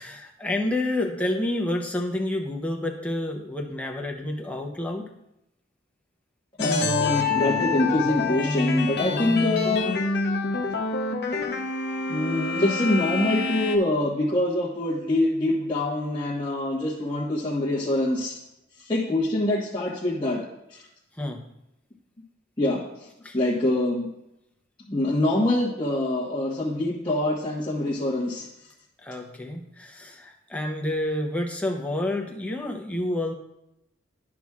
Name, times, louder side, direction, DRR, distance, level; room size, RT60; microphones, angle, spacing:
voice 1, 0.0-5.1 9.1-9.3 21.1-21.4 23.2-23.4 29.0-33.3, left 1 dB, 5° left, 0 dB, 0.7 m, -29 dB
sound 1, 6.6-13.8, left 4 dB, 55° left, 0.7 m, -27 dB
voice 2, 6.6-9.9 12.1-18.4 18.8-20.4 20.7-20.8 22.6-23.1 23.3-24.1 24.9-28.5, left 1 dB, 25° left, -7 dB, 1.2 m, -25 dB
11.5 x 6.1 x 2.4 m, 0.87 s
head